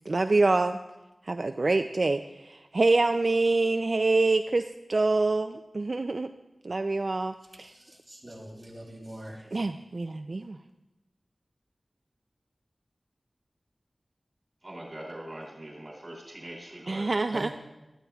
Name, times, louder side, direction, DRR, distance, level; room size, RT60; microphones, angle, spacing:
voice 1, 0.1-0.8 1.2-6.3 6.6-7.7 9.5-10.6 16.9-17.5, right 3 dB, 60° right, 7 dB, 0.4 m, -26 dB
voice 2, 7.6-9.5 17.3-17.5, right 1 dB, 15° right, -4 dB, 5.8 m, -43 dB
voice 3, 14.6-17.1, right 1 dB, 45° right, -3 dB, 2.8 m, -42 dB
22.0 x 13.5 x 2.3 m, 1.0 s
wide cardioid pair, 60°, 0 cm